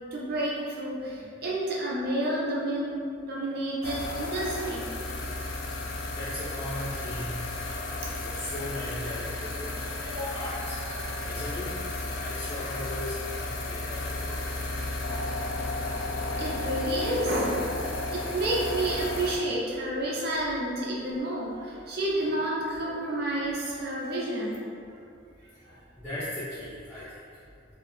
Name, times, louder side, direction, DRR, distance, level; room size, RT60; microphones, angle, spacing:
voice 1, 0.1-2.9 3.2-4.9 10.1-10.4 16.4-17.7 18.1-24.7 25.7-25.8, right 1 dB, 55° right, -5 dB, 0.4 m, -30 dB
sound 1, 3.8-19.4, left 2 dB, 85° left, 0.3 m, -33 dB
voice 2, 6.1-7.3 7.6-10.8 11.2-11.7 12.1-14.6 16.2-16.3 26.0-27.1, left 1 dB, 10° left, -13 dB, 0.5 m, -38 dB
2.4 x 2.0 x 3.0 m, 2.4 s
head